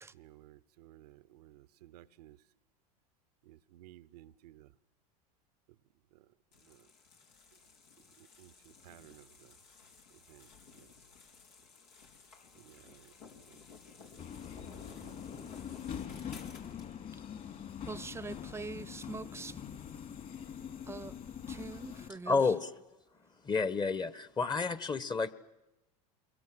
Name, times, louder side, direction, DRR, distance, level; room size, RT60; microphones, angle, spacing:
voice 1, 0.2-2.4 3.5-4.7 8.4-8.5 8.8-9.2 10.3-10.4 12.7-13.0 14.7-15.2, right 14 dB, 80° right, 0.8 m, -56 dB
sound 1, 6.5-16.9, left 5 dB, 85° left, 4.7 m, -56 dB
Subway metro underground, 14.2-22.1, left 8 dB, 40° left, 3.7 m, -44 dB
voice 2, 17.9-19.6 20.9-21.1 21.5-22.5, right 4 dB, 10° right, 0.8 m, -43 dB
voice 3, 22.3-22.7 23.4-25.3, left 4 dB, 20° left, 1.3 m, -30 dB
27.5 x 22.5 x 7.8 m
hypercardioid pair, 100°, 20 cm